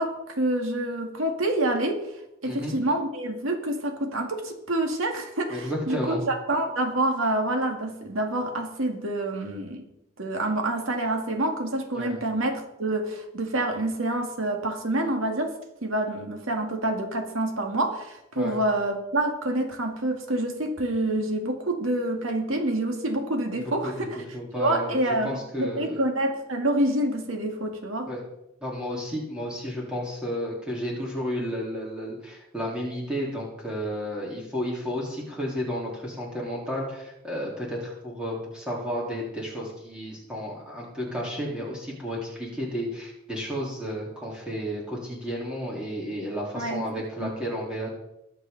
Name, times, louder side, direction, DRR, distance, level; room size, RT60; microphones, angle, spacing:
voice 1, 0.0-2.1 2.4-9.8 10.2-24.2 24.6-28.1 46.6-46.9 47.2-47.3, right 1 dB, 85° right, 4 dB, 2.0 m, -27 dB
voice 2, 2.4-2.8 5.5-6.3 11.9-12.2 18.4-18.6 23.5-26.0 28.1-28.2 28.6-47.9, equal, 5° right, -4 dB, 3.8 m, -32 dB
21.0 x 8.1 x 4.0 m, 0.87 s
head